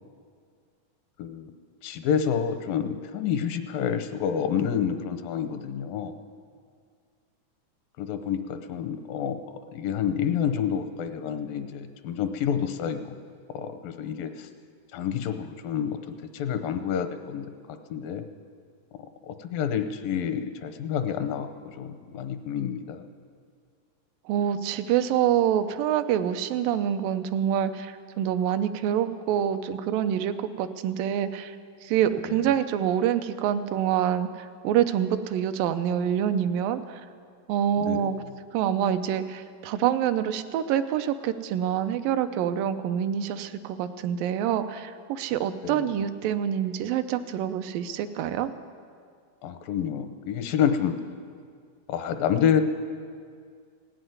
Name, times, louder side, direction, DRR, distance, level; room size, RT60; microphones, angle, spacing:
voice 1, 1.8-6.2 8.0-9.4 9.7-13.2 13.5-14.3 14.9-16.0 16.3-17.5 17.9-18.2 19.3-21.5 21.8-23.0 32.3-32.5 37.8-38.2 45.6-45.9 49.4-51.0 51.9-52.6, left 8 dB, 85° left, 9 dB, 2.5 m, -28 dB
voice 2, 24.3-31.5 31.8-34.3 34.6-36.8 37.5-38.1 38.5-48.5, right 10 dB, 85° right, 10 dB, 2.3 m, -26 dB
17.5 x 7.9 x 9.3 m, 2.1 s
omnidirectional pair, 3.9 m